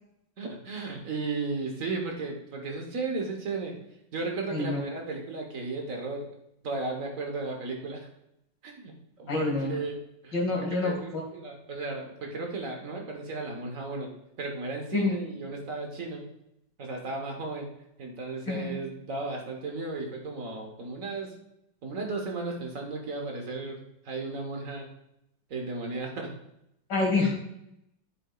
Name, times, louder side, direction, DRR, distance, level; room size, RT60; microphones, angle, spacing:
voice 1, 0.4-3.7 4.1-6.3 6.6-8.1 8.6-10.4 10.7-14.1 14.4-16.2 16.8-17.7 18.0-21.3 21.8-23.8 24.0-24.9 25.5-26.3, right 3 dB, 45° right, 1 dB, 1.6 m, -34 dB
voice 2, 9.3-9.8 10.3-11.2 14.9-15.2 18.5-18.7 26.9-27.3, left 3 dB, 70° left, -2 dB, 2.9 m, -27 dB
9.9 x 8.0 x 2.4 m, 0.81 s
omnidirectional pair, 2.0 m